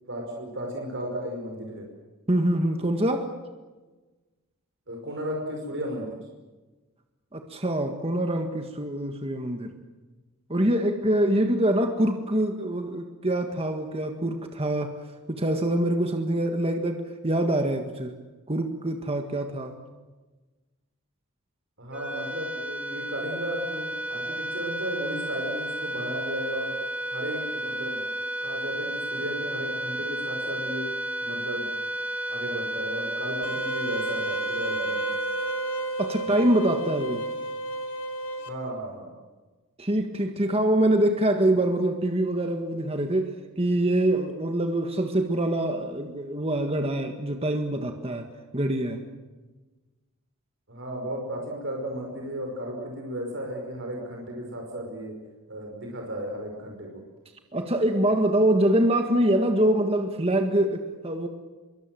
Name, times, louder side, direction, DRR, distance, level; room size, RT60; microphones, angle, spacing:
voice 1, 0.1-1.9 4.9-6.2 21.8-26.8 27.1-28.0 28.4-30.9 31.2-31.7 32.3-35.0 36.2-36.5 38.5-39.1 50.7-55.1 55.5-56.9, equal, 55° right, 1 dB, 5.5 m, -34 dB
voice 2, 2.3-3.3 7.3-9.7 10.5-15.0 15.3-18.1 18.5-19.8 36.0-37.3 39.8-48.3 48.5-49.0 57.5-61.3, right 1 dB, 25° right, 5 dB, 1.7 m, -25 dB
sound 1, 21.9-36.5, right 1 dB, 5° right, 0.9 m, -32 dB
sound 2, 33.4-38.5, right 2 dB, 60° left, 3.2 m, -32 dB
25.5 x 23.5 x 7.7 m, 1.2 s
head